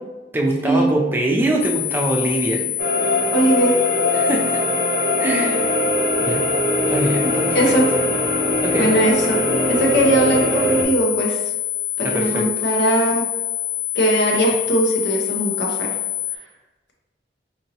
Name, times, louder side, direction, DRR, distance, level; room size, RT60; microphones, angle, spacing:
voice 1, 0.3-2.6 4.1-4.6 5.2-5.7 6.2-6.5 6.9-7.7 8.6-8.9 12.0-12.4, right 1 dB, 10° right, -1 dB, 0.4 m, -23 dB
sound 1, 1.6-16.4, left 15 dB, 60° left, 0.4 m, -26 dB
sound 2, 2.8-10.8, equal, 60° right, 0.6 m, -22 dB
voice 2, 3.3-3.8 7.5-7.9 8.8-9.4 9.7-11.4 12.0-13.3 13.9-15.9, right 1 dB, 80° left, -1 dB, 0.8 m, -19 dB
4.4 x 2.7 x 2.8 m, 1.1 s
head